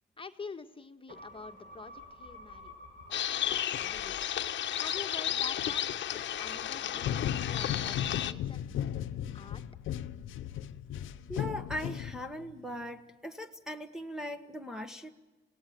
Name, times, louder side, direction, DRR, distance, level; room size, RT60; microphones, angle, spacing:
voice 1, 0.2-2.7 3.1-4.3 4.7-8.6 9.3-9.6, left 4 dB, 25° left, 6 dB, 1.6 m, -47 dB
sound 1, 1.1-5.8 6.1-6.2, left 1 dB, 40° right, 7.9 m, -52 dB
sound 2, 3.1-8.3, left 10 dB, 65° left, 1.1 m, -33 dB
sound 3, 7.0-12.5, left 10 dB, 80° left, 0.8 m, -36 dB
voice 2, 11.3-15.1, equal, 5° right, 2 dB, 1.5 m, -39 dB
27.0 x 18.0 x 7.7 m, 1.1 s
cardioid pair, 90°, 20 cm